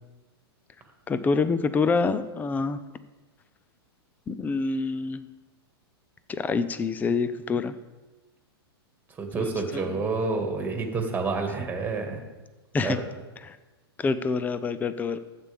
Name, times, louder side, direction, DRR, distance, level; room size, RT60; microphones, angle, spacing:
voice 1, 1.1-2.8 4.3-5.2 6.3-7.7 9.4-9.9 12.7-13.0 13.4-13.6 14.0-15.2, left 4 dB, 10° left, 13 dB, 0.5 m, -26 dB
voice 2, 9.2-12.2 12.8-13.0, right 4 dB, 15° right, 3 dB, 2.0 m, -28 dB
14.5 x 8.4 x 3.6 m, 1.2 s
hypercardioid pair, 130°, 13 cm